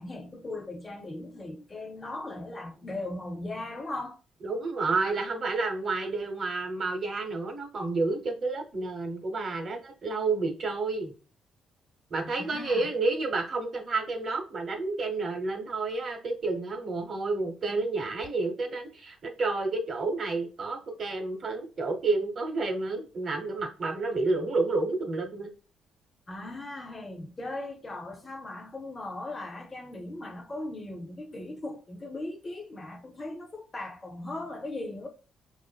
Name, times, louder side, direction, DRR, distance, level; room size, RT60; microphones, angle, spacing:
voice 1, 0.0-4.2 12.1-12.9 26.3-35.1, left 2 dB, 25° left, 0.6 m, -38 dB
voice 2, 4.4-11.1 12.1-25.5, right 3 dB, 50° right, 0.8 m, -30 dB
4.7 x 2.4 x 2.2 m
cardioid pair, 90°, 0 cm